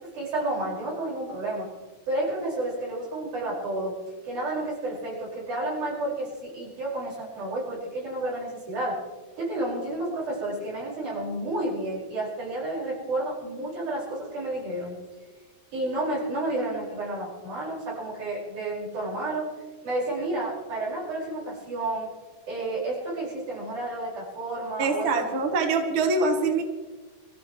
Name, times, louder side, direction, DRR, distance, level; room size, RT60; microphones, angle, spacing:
voice 1, 0.0-1.7 2.1-4.0 4.2-9.0 9.4-15.0 15.7-19.5 19.8-22.1 22.5-25.3, right 2 dB, 80° right, -5 dB, 7.0 m, -31 dB
voice 2, 24.8-26.6, right 3 dB, 50° right, 4 dB, 1.9 m, -24 dB
25.5 x 15.0 x 3.2 m, 1.3 s
omnidirectional pair, 3.5 m